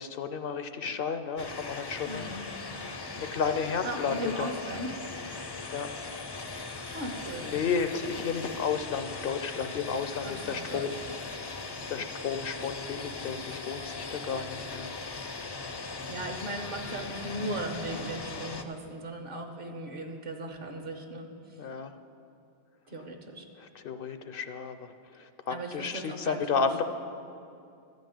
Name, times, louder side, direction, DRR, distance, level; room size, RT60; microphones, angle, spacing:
voice 1, 0.0-2.3 3.2-4.5 5.7-5.9 7.4-11.0 11.9-14.9 21.6-21.9 23.6-26.8, left 6 dB, 65° left, 9 dB, 0.7 m, -32 dB
sound 1, 1.4-18.6, left 3 dB, 30° left, 0.5 m, -39 dB
voice 2, 2.1-2.4 3.8-4.9 6.9-7.5 10.2-10.9 15.7-21.6 22.9-23.5 25.5-26.8, right 1 dB, 60° right, 4 dB, 1.2 m, -38 dB
13.5 x 5.3 x 9.0 m, 2.5 s
omnidirectional pair, 1.1 m